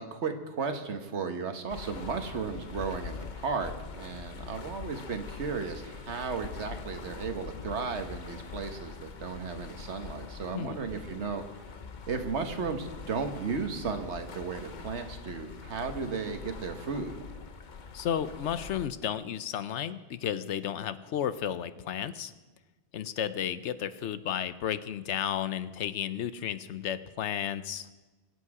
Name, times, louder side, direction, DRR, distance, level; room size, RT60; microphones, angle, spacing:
voice 1, 0.0-11.4 12.1-17.2, right 5 dB, 80° right, 7 dB, 1.5 m, -35 dB
sound 1, 1.7-18.9, left 5 dB, 45° left, 0.9 m, -44 dB
voice 2, 17.9-22.3 22.9-27.9, left 9 dB, 90° left, 14 dB, 1.0 m, -33 dB
22.5 x 8.4 x 4.8 m, 1.2 s
omnidirectional pair, 1.2 m